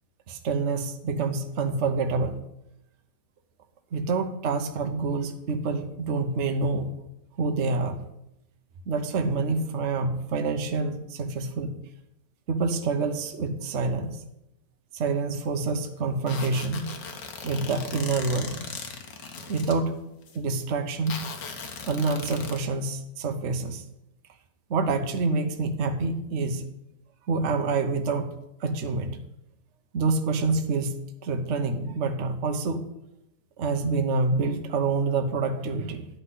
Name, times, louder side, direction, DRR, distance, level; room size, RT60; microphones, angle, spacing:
voice 1, 0.3-2.4 3.9-6.9 7.4-8.0 8.9-11.7 12.5-14.2 14.9-16.9 17.4-18.6 19.5-19.9 20.3-21.2 21.8-23.8 24.7-26.7 27.3-28.3 28.6-29.2 29.9-32.8 33.6-36.1, right 3 dB, 45° right, 5 dB, 1.0 m, -27 dB
sound 1, 16.3-19.7 20.2-20.4 21.1-22.6, left 5 dB, 70° left, 1.9 m, -38 dB
11.0 x 5.7 x 8.1 m, 0.82 s
omnidirectional pair, 2.0 m